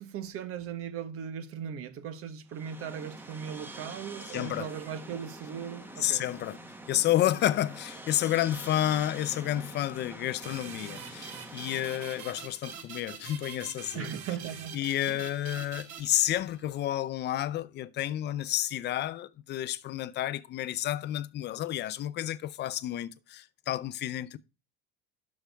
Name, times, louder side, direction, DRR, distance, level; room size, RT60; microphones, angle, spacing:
voice 1, 0.0-6.3 13.9-15.2, right 8 dB, 50° right, 1.2 m, -38 dB
sound 1, 2.5-12.6, right 1 dB, 5° right, 1.1 m, -46 dB
voice 2, 4.3-4.7 6.0-6.6 6.9-14.1 14.7-24.4, left 13 dB, 35° left, 0.5 m, -30 dB
sound 2, 10.4-16.8, right 7 dB, 85° right, 5.4 m, -45 dB
11.0 x 6.5 x 3.4 m
cardioid pair, 160°, 29 cm